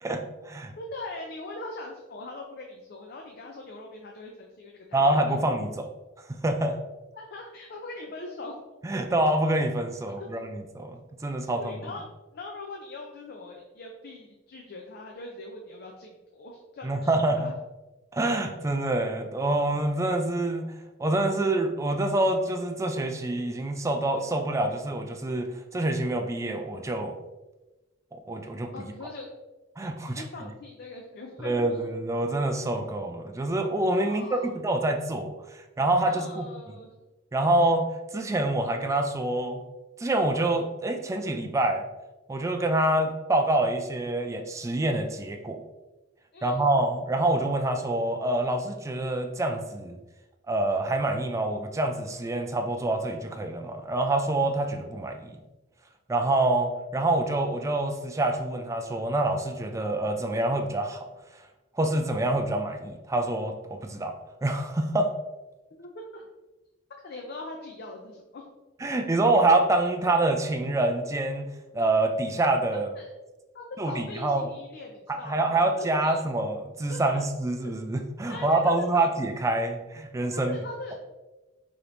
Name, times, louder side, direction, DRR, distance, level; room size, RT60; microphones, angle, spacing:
voice 1, 0.0-0.7 4.9-5.9 6.3-6.8 8.8-11.8 16.8-17.4 18.1-20.7 21.0-25.5 25.7-27.2 28.1-28.7 29.8-30.2 31.4-36.5 37.3-37.9 38.1-39.6 40.0-41.8 42.3-45.6 46.4-50.0 50.5-55.4 56.1-61.1 61.8-64.1 64.4-65.1 68.8-71.5 71.7-72.9 73.8-74.5 75.1-80.6, right 2 dB, 15° right, 5 dB, 0.3 m, -26 dB
voice 2, 0.8-5.4 7.2-8.6 10.2-10.3 11.6-12.0 12.3-17.5 28.7-29.3 30.1-31.9 34.0-34.5 36.1-36.9 46.3-46.7 65.7-66.2 67.0-68.5 72.7-73.1 73.5-76.2 76.9-77.2 77.6-77.7 78.3-79.1 80.3-80.9, left 2 dB, 55° left, 1 dB, 0.5 m, -41 dB
4.9 x 2.9 x 2.6 m, 1.1 s
head